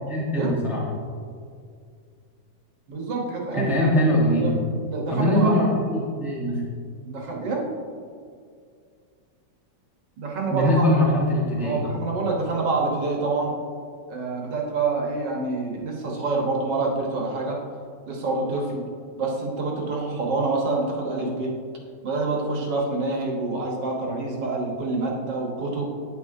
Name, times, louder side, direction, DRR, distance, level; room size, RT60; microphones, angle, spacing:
voice 1, 0.1-0.8 3.5-4.5 5.1-6.6 10.5-11.8, equal, ahead, -4 dB, 0.9 m, -22 dB
voice 2, 2.9-4.0 4.3-4.6 4.9-5.6 7.0-7.7 10.2-10.9 11.6-13.6 14.1-17.6 18.1-18.9 19.2-21.5 22.0-25.8, right 3 dB, 80° right, -1 dB, 1.8 m, -27 dB
9.5 x 6.0 x 2.7 m, 2.2 s
omnidirectional pair, 1.9 m